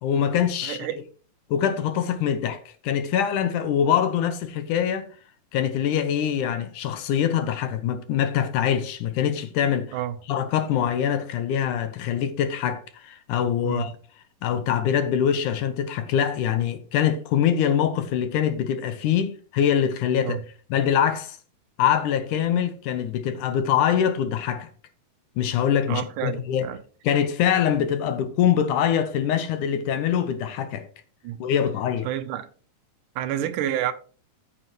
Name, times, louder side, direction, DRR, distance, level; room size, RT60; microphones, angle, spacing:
voice 1, 0.0-0.9 1.5-5.1 5.5-10.0 10.3-13.9 14.4-20.4 20.7-21.4 21.8-24.7 25.4-26.7 27.0-30.9 31.4-32.1, left 9 dB, 70° left, 2.3 m, -24 dB
voice 2, 0.6-1.0 9.9-10.2 13.6-13.9 20.2-20.4 25.9-26.8 31.2-31.4 32.0-32.5 33.2-33.9, right 11 dB, 75° right, 2.3 m, -29 dB
14.0 x 7.8 x 3.1 m
omnidirectional pair, 4.0 m